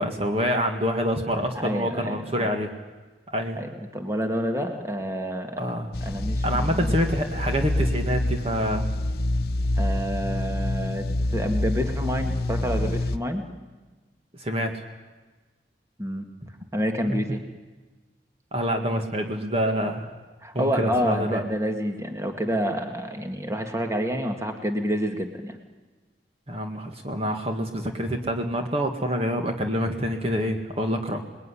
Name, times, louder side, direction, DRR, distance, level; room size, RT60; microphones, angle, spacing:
voice 1, 0.0-2.7 3.3-3.6 5.6-5.9 6.4-8.9 14.4-14.8 17.1-17.2 18.5-20.1 20.5-21.4 26.5-31.2, equal, 35° right, 4 dB, 1.9 m, -26 dB
voice 2, 1.5-2.5 3.6-5.7 6.1-6.9 9.8-11.1 11.3-13.5 16.0-16.3 16.7-17.4 20.4-25.6, equal, 15° right, 5 dB, 2.1 m, -28 dB
sound 1, 5.9-13.2, left 1 dB, 55° left, 1.0 m, -27 dB
28.0 x 20.5 x 10.0 m, 1.3 s
head